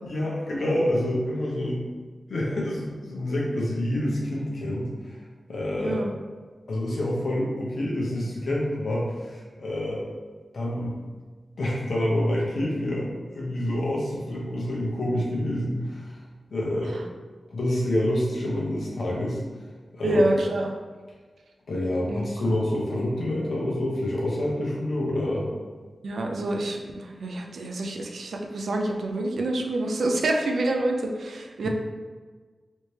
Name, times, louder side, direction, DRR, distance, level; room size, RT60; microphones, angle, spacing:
voice 1, 0.0-1.8 2.3-5.2 5.5-6.0 6.7-10.1 10.5-11.0 11.6-16.2 16.5-17.0 17.5-19.4 19.9-20.2 21.7-25.5 31.6-31.7, left 1 dB, 70° left, -4 dB, 0.9 m, -27 dB
voice 2, 5.7-6.1 20.0-20.7 22.1-22.3 26.0-31.7, right 1 dB, 90° right, 2 dB, 0.4 m, -27 dB
3.2 x 2.8 x 3.2 m, 1.4 s
wide cardioid pair, 135°, 0 cm